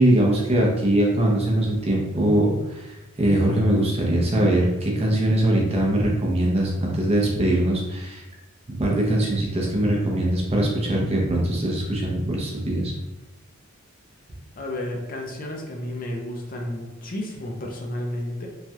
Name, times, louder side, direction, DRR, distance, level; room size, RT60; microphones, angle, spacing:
voice 1, 0.0-8.2 8.7-12.9, right 1 dB, 30° right, -2 dB, 0.6 m, -22 dB
voice 2, 14.6-18.5, left 1 dB, 40° left, 1 dB, 0.5 m, -32 dB
3.2 x 2.3 x 2.7 m, 1.0 s
head